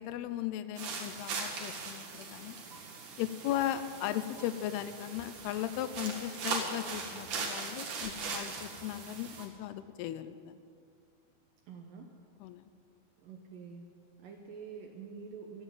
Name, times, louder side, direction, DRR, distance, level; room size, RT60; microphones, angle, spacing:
voice 1, 0.0-2.6 3.2-10.6 12.4-12.7, left 12 dB, 80° left, 12 dB, 2.5 m, -37 dB
sound 1, 0.8-9.5, right 4 dB, 55° right, 3.0 m, -40 dB
voice 2, 11.7-12.1 13.2-13.9 14.2-15.6, right 5 dB, 70° right, 3 dB, 2.2 m, -47 dB
14.5 x 9.9 x 8.4 m, 2.2 s
omnidirectional pair, 5.0 m